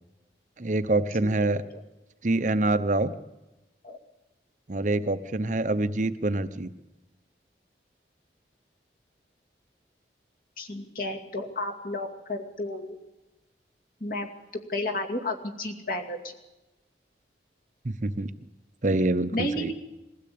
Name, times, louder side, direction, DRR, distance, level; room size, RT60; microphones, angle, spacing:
voice 1, 0.6-1.6 2.2-3.1 4.7-6.7 17.8-18.3 18.8-19.7, right 2 dB, 40° right, 12 dB, 0.8 m, -26 dB
voice 2, 10.6-13.0 14.0-14.3 14.7-16.2 19.3-19.7, left 1 dB, 50° left, 3 dB, 2.4 m, -32 dB
21.5 x 16.0 x 8.6 m, 1.0 s
head